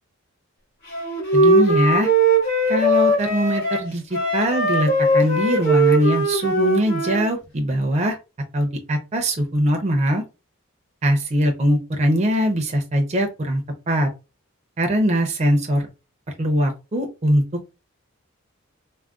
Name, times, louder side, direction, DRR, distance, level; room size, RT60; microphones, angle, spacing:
Wind instrument woodwind instrument, 0.9-7.3, right 1 dB, 50° left, 1.1 m, -19 dB
voice 1, 1.3-2.1 2.7-8.2 8.5-10.2 11.0-14.1 14.8-15.9 16.4-17.4, equal, 30° right, 3 dB, 0.5 m, -21 dB
3.5 x 2.1 x 2.4 m, 0.28 s
head